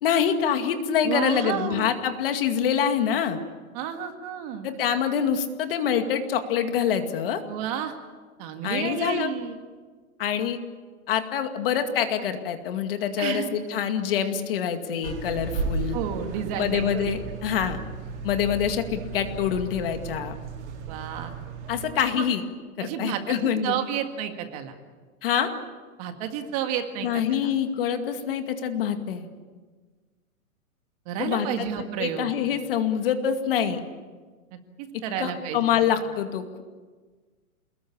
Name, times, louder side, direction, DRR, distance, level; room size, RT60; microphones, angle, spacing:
voice 1, 0.0-3.4 4.6-7.4 8.6-9.3 10.2-10.6 11.1-16.0 16.6-17.8 18.2-20.3 21.7-22.4 22.8-23.8 25.2-25.5 27.0-29.3 31.2-31.7 32.0-33.8 35.2-36.6, left 8 dB, 40° left, 7 dB, 2.3 m, -25 dB
voice 2, 1.0-1.9 3.7-4.7 7.5-7.9 8.4-9.6 13.2-13.5 15.9-17.1 20.9-21.3 22.1-22.2 22.8-24.7 26.0-27.4 31.1-32.3 35.0-35.8, right 9 dB, 25° right, 6 dB, 1.9 m, -31 dB
sound 1, 15.0-21.9, right 4 dB, 50° right, 4.5 m, -35 dB
29.0 x 21.0 x 8.7 m, 1.4 s
hypercardioid pair, 170°, 43 cm